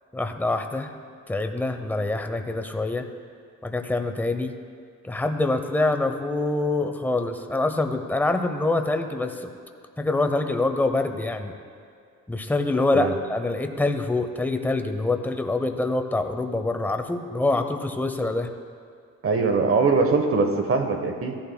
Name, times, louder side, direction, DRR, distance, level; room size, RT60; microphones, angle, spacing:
voice 1, 0.1-0.9 1.3-3.1 3.6-4.5 5.0-9.5 10.0-11.5 12.3-18.5, left 2 dB, 5° left, 6 dB, 0.8 m, -25 dB
voice 2, 19.2-21.4, right 4 dB, 45° right, 6 dB, 1.1 m, -22 dB
16.0 x 11.5 x 2.3 m, 2.4 s
cardioid pair, 90°, 30 cm